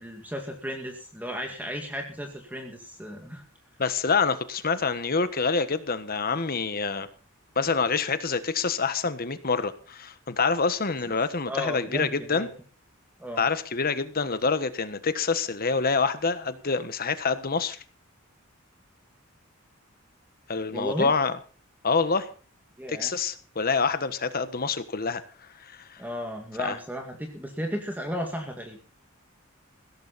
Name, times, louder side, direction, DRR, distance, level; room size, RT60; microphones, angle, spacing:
voice 1, 0.0-3.5 11.1-11.2 11.5-12.5 13.2-13.4 20.7-21.1 22.8-23.1 26.0-28.8, equal, 10° right, 2 dB, 2.1 m, -34 dB
voice 2, 3.8-7.1 7.5-12.5 13.4-17.8 20.5-21.3 21.8-22.3 22.9-25.2 25.6-26.0 26.6-26.8, left 4 dB, 45° left, 12 dB, 1.3 m, -26 dB
16.5 x 14.0 x 4.2 m, 0.39 s
head